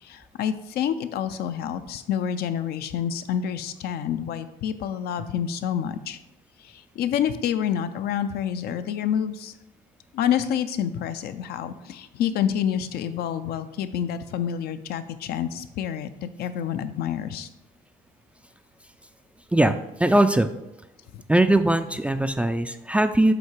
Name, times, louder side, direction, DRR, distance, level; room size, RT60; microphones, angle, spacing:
voice 1, 0.0-6.2 6.6-9.5 10.1-17.5 21.1-21.2, left 9 dB, 70° left, 10 dB, 0.5 m, -28 dB
voice 2, 19.5-20.5 21.3-23.3, right 1 dB, 5° right, 9 dB, 0.3 m, -20 dB
7.7 x 2.8 x 4.5 m, 0.88 s
cardioid pair, 110°, 17 cm